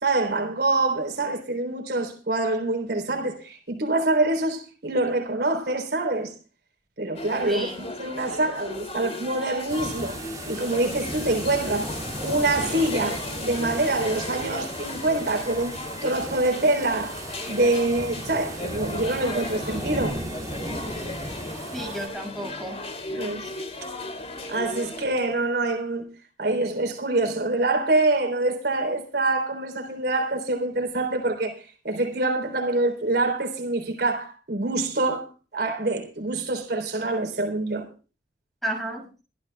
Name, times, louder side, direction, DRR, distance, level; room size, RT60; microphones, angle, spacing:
voice 1, 0.0-6.3 7.0-10.2 10.5-11.9 12.2-20.2 23.1-23.5 24.5-26.0 26.4-37.9, right 2 dB, 60° right, 3.7 m, -25 dB
sound 1, 7.2-25.1, left 2 dB, 35° left, 2.8 m, -36 dB
voice 2, 7.4-7.8 21.7-22.8 38.6-39.2, right 1 dB, ahead, 6.5 m, -32 dB
sound 2, 9.7-22.1, right 1 dB, 20° right, 2.5 m, -36 dB
25.5 x 13.0 x 2.3 m
head